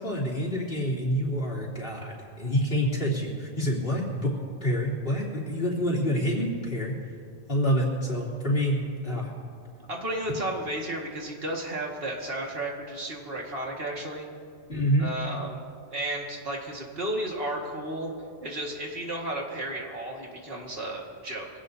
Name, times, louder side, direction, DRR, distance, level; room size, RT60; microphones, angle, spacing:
voice 1, 0.0-4.3 4.6-6.9 7.5-9.3 14.7-15.1, equal, 60° left, -5 dB, 3.4 m, -27 dB
voice 2, 9.9-14.3 15.0-15.6 15.9-18.1 18.4-21.5, right 1 dB, 65° right, -1 dB, 2.2 m, -33 dB
24.0 x 16.5 x 2.8 m, 2.2 s
omnidirectional pair, 1.1 m